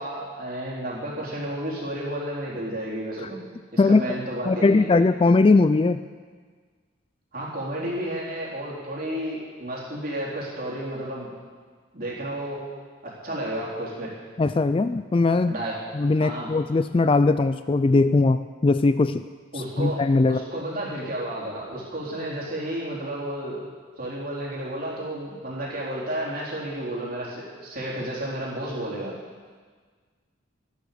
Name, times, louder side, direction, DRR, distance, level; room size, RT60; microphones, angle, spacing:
voice 1, 0.0-3.4 3.7-4.9 7.3-11.3 11.9-12.6 13.0-14.1 15.5-15.8 16.2-16.5 19.5-20.0 20.3-23.6 24.0-29.1, right 1 dB, 45° right, -5 dB, 4.0 m, -32 dB
voice 2, 4.5-6.0 14.4-15.5 15.9-19.2 19.8-20.4, left 3 dB, 25° left, 11 dB, 0.3 m, -20 dB
14.0 x 11.5 x 6.9 m, 1.5 s
head